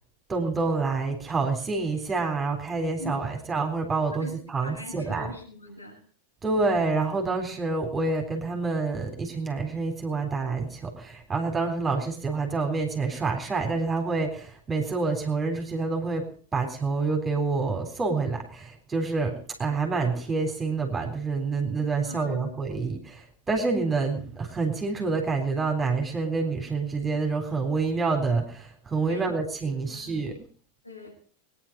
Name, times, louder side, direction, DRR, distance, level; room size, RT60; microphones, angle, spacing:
voice 1, 0.3-5.3 6.4-16.3 16.5-30.4, right 4 dB, 15° right, 3 dB, 4.0 m, -27 dB
voice 2, 4.6-6.0 22.0-22.5 29.1-29.5 29.8-30.1 30.8-31.1, left 2 dB, 85° left, -1 dB, 8.0 m, -41 dB
23.0 x 10.0 x 5.4 m, 0.43 s
figure-of-eight pair, 90°, 0 cm